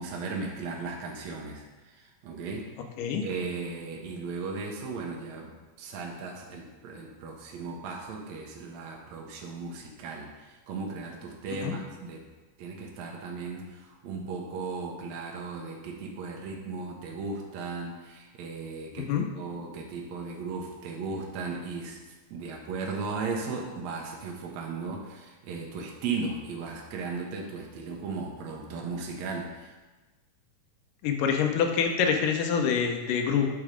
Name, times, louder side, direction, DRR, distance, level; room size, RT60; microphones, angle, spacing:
voice 1, 0.0-2.7 3.2-12.3 12.6-22.0 22.3-29.7, right 4 dB, 70° right, -1 dB, 1.9 m, -36 dB
voice 2, 31.0-33.5, left 7 dB, 85° left, 3 dB, 2.5 m, -26 dB
8.4 x 4.7 x 5.0 m, 1.2 s
omnidirectional pair, 3.7 m